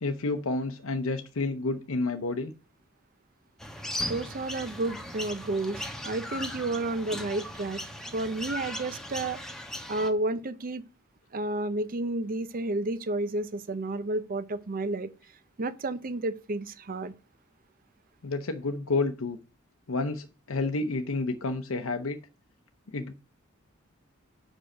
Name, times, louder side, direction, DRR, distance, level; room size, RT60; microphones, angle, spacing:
voice 1, 0.0-2.5 18.2-19.4 19.9-22.2 22.9-23.1, left 3 dB, 70° left, 0.7 m, -30 dB
sound 1, 3.6-10.1, left 1 dB, ahead, 1.1 m, -38 dB
voice 2, 4.1-7.8 8.1-9.4 9.9-10.8 11.3-15.1 15.6-17.1, right 2 dB, 45° right, 0.6 m, -31 dB
6.3 x 5.0 x 6.2 m
head